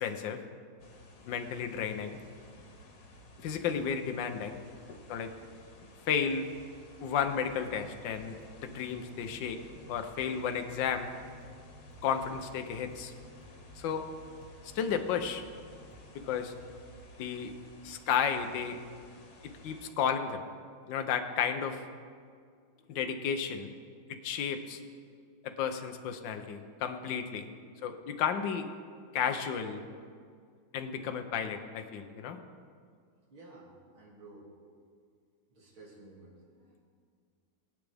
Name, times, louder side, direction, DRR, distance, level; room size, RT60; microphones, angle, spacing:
voice 1, 0.0-0.4 1.3-2.2 3.4-4.6 5.1-5.3 6.1-6.5 7.0-9.6 9.9-11.1 12.0-13.1 13.8-14.1 14.6-15.4 16.3-16.5 17.2-17.5 17.8-18.8 19.6-20.4 20.9-21.8 22.9-23.7 24.1-24.8 25.4-27.5 27.8-28.7 29.1-29.8 30.7-32.4, left 7 dB, 65° left, 6 dB, 1.5 m, -33 dB
sound 1, 0.8-19.9, left 2 dB, 85° left, 2.2 m, -54 dB
sound 2, 7.2-16.4, equal, 25° right, 0.7 m, -55 dB
voice 2, 33.3-34.5 35.5-36.8, right 2 dB, 70° right, -4 dB, 3.3 m, -53 dB
22.5 x 8.3 x 3.5 m, 2.1 s
omnidirectional pair, 2.3 m